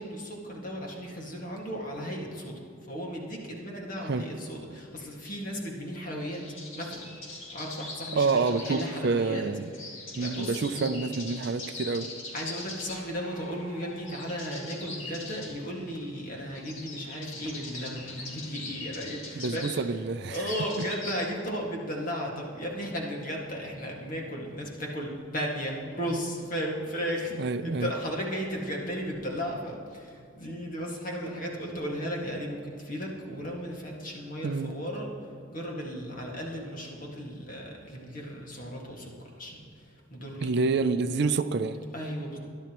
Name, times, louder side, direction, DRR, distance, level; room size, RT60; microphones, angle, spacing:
voice 1, 0.0-6.4 6.7-9.4 9.8-11.0 12.3-19.8 20.3-27.3 27.6-35.1 35.5-39.1 39.4-39.6 40.1-40.5 41.9-42.4, equal, 40° left, -1 dB, 1.9 m, -35 dB
sound 1, 6.2-21.2, left 3 dB, 65° left, 2.3 m, -42 dB
voice 2, 8.1-9.7 10.2-12.1 19.3-20.5 20.8-20.9 27.4-27.9 34.4-34.7 40.4-41.8, right 4 dB, 50° right, 10 dB, 0.4 m, -28 dB
21.0 x 10.5 x 3.0 m, 2.4 s
head